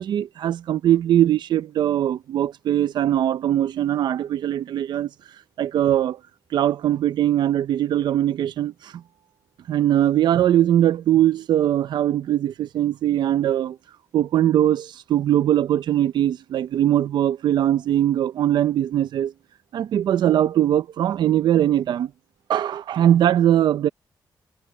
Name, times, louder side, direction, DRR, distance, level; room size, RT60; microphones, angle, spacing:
voice 1, 0.0-5.1 5.6-6.2 6.5-8.7 9.7-13.8 14.1-19.3 19.7-22.1 22.5-23.9, right 11 dB, 80° right, 0.7 m, -21 dB
cardioid pair, 115°, 7 cm